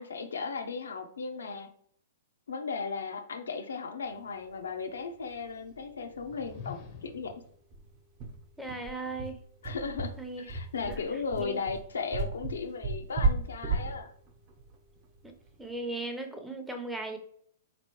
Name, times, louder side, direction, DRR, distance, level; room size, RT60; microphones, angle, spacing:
voice 1, 0.0-1.7 2.5-7.3 9.6-10.1 10.4-14.1, left 5 dB, 80° left, 6 dB, 0.6 m, -36 dB
sound 1, 5.3-5.4 5.7-5.8 6.1-6.3 6.7-6.8 7.2-15.7, right 3 dB, 40° right, 0.9 m, -34 dB
sound 2, 6.1-7.4, left 7 dB, 40° left, 0.7 m, -46 dB
voice 2, 8.6-9.4 10.2-10.5 10.9-11.0 11.5-11.6 15.2-15.3 15.6-17.2, right 2 dB, 5° right, 4 dB, 0.7 m, -37 dB
4.0 x 3.0 x 3.0 m, 0.63 s
hypercardioid pair, 120°, 0 cm